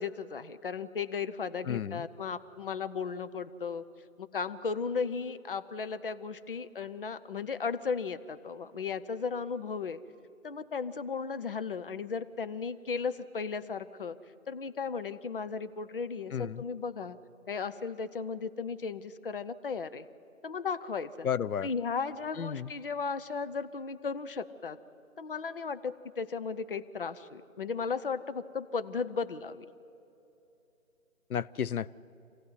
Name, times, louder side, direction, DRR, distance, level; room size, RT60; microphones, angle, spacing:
voice 1, 0.0-3.8 4.2-10.0 10.4-14.2 14.5-17.2 17.5-20.1 20.4-21.3 21.6-24.8 25.2-29.7, left 5 dB, 40° left, 0.7 m, -35 dB
voice 2, 1.7-2.1 16.3-16.6 21.2-21.7 22.4-22.7 31.3-32.0, left 8 dB, 85° left, 0.7 m, -32 dB
26.5 x 16.0 x 9.7 m
figure-of-eight pair, 165°, 42 cm